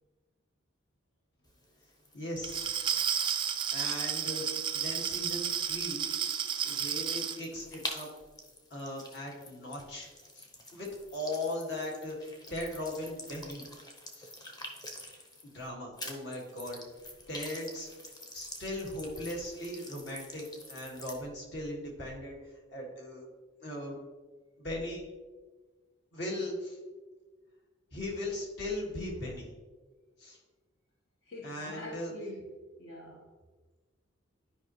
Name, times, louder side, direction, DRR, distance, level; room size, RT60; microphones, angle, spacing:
sound 1, 1.4-15.7 16.0-21.2, left 1 dB, 20° left, 0.8 m, -48 dB
voice 1, 2.1-3.0 3.7-4.5 4.7-6.1 6.6-8.1 8.7-10.1 10.3-10.5 10.7-12.2 12.5-13.6 14.1-14.3 15.5-16.9 17.3-17.9 18.3-22.4 22.7-23.2 23.6-24.0 24.6-25.0 26.1-26.8 27.9-29.5 30.2-30.4 31.4-32.1, left 1 dB, 55° left, -2 dB, 2.0 m, -38 dB
Glass, 2.4-7.4, right 8 dB, 25° right, 0.3 m, -32 dB
voice 2, 31.2-33.2, left 1 dB, 70° left, -3 dB, 1.2 m, -45 dB
11.5 x 5.2 x 3.1 m, 1.3 s
head